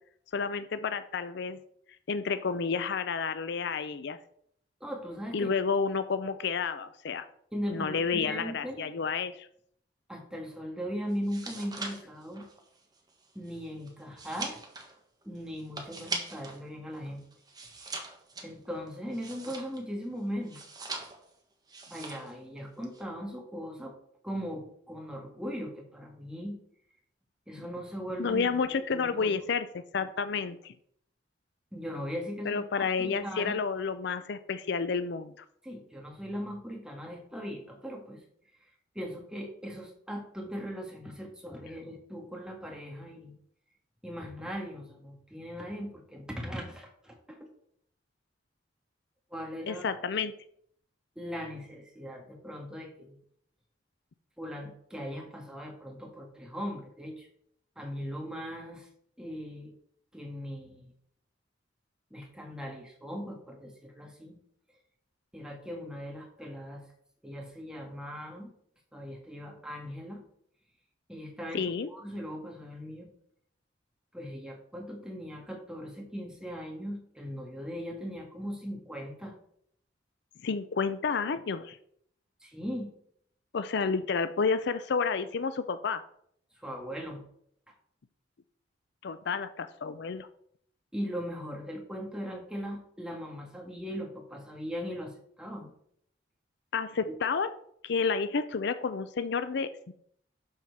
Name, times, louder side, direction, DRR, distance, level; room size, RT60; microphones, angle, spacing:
voice 1, 0.3-1.6 2.1-4.2 5.3-7.3 7.7-9.5 28.2-30.7 32.5-35.4 49.7-50.3 71.5-71.9 80.4-81.8 83.5-86.0 89.0-90.3 96.7-97.5 97.8-99.9, left 5 dB, 65° left, 12 dB, 0.5 m, -30 dB
voice 2, 4.8-5.5 7.5-8.9 10.1-12.5 13.4-14.6 15.2-17.2 17.8-17.9 18.4-20.6 21.9-23.9 24.2-26.6 27.5-28.6 28.9-29.4 31.7-33.6 35.6-38.2 38.6-38.7 39.0-43.3 44.0-47.5 49.3-50.0 51.2-53.2 54.4-57.3 57.8-58.9 59.2-59.7 60.1-60.9 62.1-64.4 65.3-66.9 67.2-68.5 68.9-70.2 71.1-73.1 74.1-79.3 82.4-82.9 86.6-87.2 87.7-87.8 90.9-95.7, equal, 5° right, 1 dB, 1.6 m, -39 dB
sound 1, 11.1-16.6 16.9-20.0 20.5-21.4 21.7-22.4 22.6-23.0, right 3 dB, 20° right, 1.4 m, -41 dB
12.0 x 4.4 x 4.7 m, 0.67 s
head